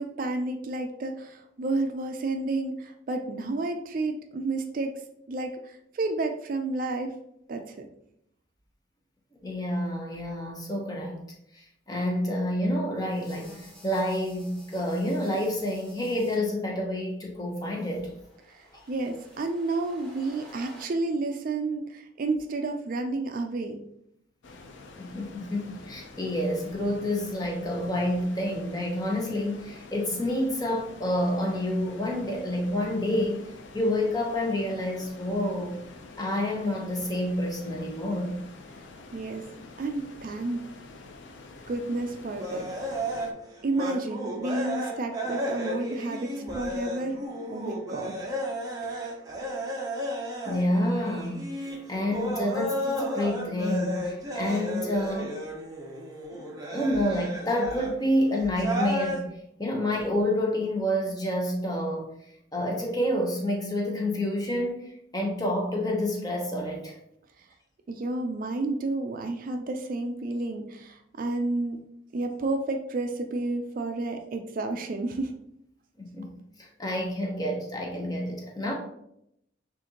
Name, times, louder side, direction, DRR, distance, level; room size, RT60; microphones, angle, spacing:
voice 1, 0.0-5.0 5.3-7.1 7.5-7.9 18.5-23.8 39.1-39.4 39.8-40.6 41.7-42.7 43.6-47.2 47.5-48.3 48.8-49.1 67.9-71.9 72.1-75.3, right 2 dB, 45° right, 5 dB, 0.3 m, -31 dB
voice 2, 9.4-11.2 11.5-18.1 25.0-35.8 36.2-38.3 50.4-51.4 51.9-55.4 56.3-59.3 59.6-62.1 62.5-67.0 76.0-76.3 76.6-78.7, left 1 dB, 20° left, 0 dB, 0.8 m, -28 dB
sound 1, 13.1-16.4 17.5-20.8, left 1 dB, 5° left, 1.3 m, -52 dB
sound 2, 24.4-43.3, left 3 dB, 75° left, 0.5 m, -47 dB
sound 3, 42.3-58.0 58.6-59.2, equal, 20° right, 0.7 m, -33 dB
6.3 x 2.5 x 2.8 m, 0.77 s
head